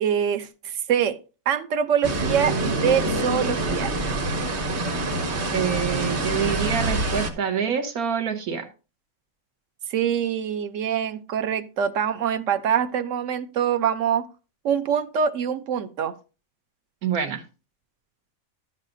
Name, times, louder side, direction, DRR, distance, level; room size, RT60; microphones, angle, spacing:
voice 1, 0.0-1.2 1.5-3.9 9.9-14.3 14.6-16.1, right 8 dB, 65° right, 0.9 m, -24 dB
sound 1, 2.0-7.3, right 2 dB, 45° right, 1.1 m, -26 dB
voice 2, 5.5-8.7 17.0-17.4, right 7 dB, 85° right, 1.6 m, -26 dB
11.5 x 7.3 x 2.6 m
omnidirectional pair, 1.5 m